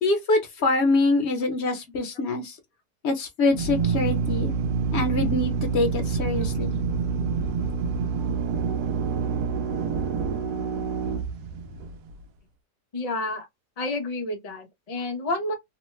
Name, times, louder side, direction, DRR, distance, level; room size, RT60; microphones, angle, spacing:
voice 1, 0.0-2.6 3.0-4.5 4.9-6.8, left 2 dB, 50° left, 0.8 m, -24 dB
Drill, 3.5-12.1, right 5 dB, 70° right, 1.1 m, -27 dB
voice 2, 12.9-13.5 13.8-15.5, left 2 dB, 80° left, 0.3 m, -29 dB
3.1 x 2.1 x 3.0 m
omnidirectional pair, 1.8 m